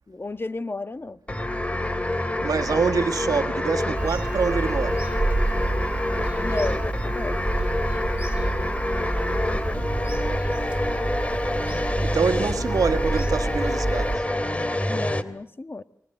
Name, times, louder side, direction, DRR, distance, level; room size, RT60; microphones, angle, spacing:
voice 1, 0.1-1.2 6.4-7.4 14.9-15.8, left 2 dB, 40° left, 1.5 m, -32 dB
sound 1, 1.3-15.2, left 1 dB, 20° left, 2.7 m, -27 dB
voice 2, 2.4-5.1 12.0-14.3, right 5 dB, 80° right, 1.6 m, -25 dB
Bird vocalization bird call bird song / Telephone, 3.9-14.2, right 2 dB, 20° right, 3.3 m, -29 dB
30.0 x 24.0 x 7.9 m
cardioid pair, 50°, 6 cm